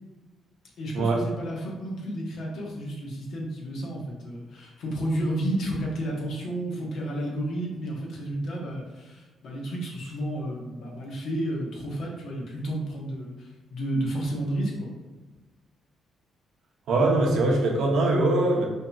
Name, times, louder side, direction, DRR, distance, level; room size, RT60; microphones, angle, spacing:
voice 1, 0.8-14.9, right 1 dB, 70° left, -2 dB, 1.1 m, -31 dB
voice 2, 16.9-18.6, right 2 dB, 75° right, 0 dB, 0.9 m, -22 dB
5.0 x 2.8 x 2.4 m, 1.3 s
cardioid pair, 90°, 0 cm